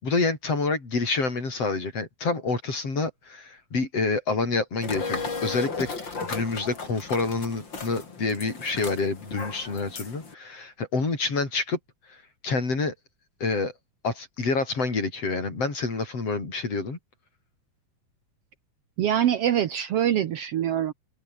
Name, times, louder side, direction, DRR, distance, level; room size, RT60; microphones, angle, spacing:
voice 1, 0.0-5.9 6.2-11.8 12.1-12.2 12.4-12.9 13.4-13.7 14.0-17.0, left 3 dB, 55° left, 6.6 m, -27 dB
sound 1, 4.8-10.3, left 4 dB, 40° left, 4.3 m, -35 dB
voice 2, 19.0-20.9, right 10 dB, 65° right, 1.8 m, -24 dB
omnidirectional pair, 3.4 m